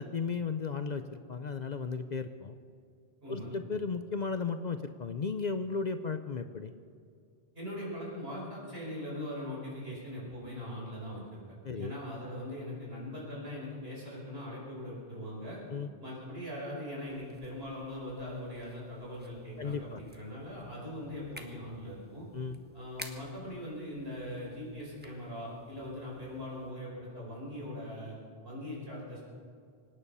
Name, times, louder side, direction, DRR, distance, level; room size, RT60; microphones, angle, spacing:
voice 1, 0.0-2.6 3.3-6.7 11.6-12.0 15.7-15.9 19.6-20.0 22.3-22.6, left 5 dB, 50° left, 9 dB, 0.7 m, -35 dB
voice 2, 3.2-3.5 7.5-11.4 11.7-15.6 16.0-22.2 22.7-28.2 28.4-29.2, left 1 dB, 65° right, -4 dB, 5.6 m, -41 dB
sound 1, 17.1-26.7, right 1 dB, 10° right, 1.3 m, -54 dB
25.5 x 9.9 x 5.5 m, 2.3 s
omnidirectional pair, 1.1 m